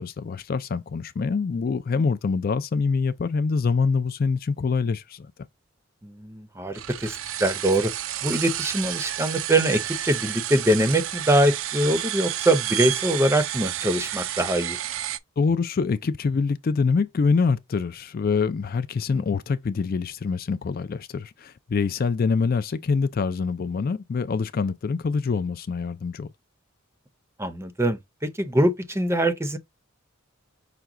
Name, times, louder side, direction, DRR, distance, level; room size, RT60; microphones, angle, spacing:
voice 1, 0.0-5.3 15.4-26.3, left 5 dB, 45° left, 0.3 m, -25 dB
voice 2, 6.0-7.9 8.2-14.8 27.4-29.6, right 1 dB, 10° right, 0.6 m, -23 dB
sound 1, 6.7-15.2, right 12 dB, 65° right, 0.4 m, -31 dB
5.9 x 2.2 x 3.7 m
head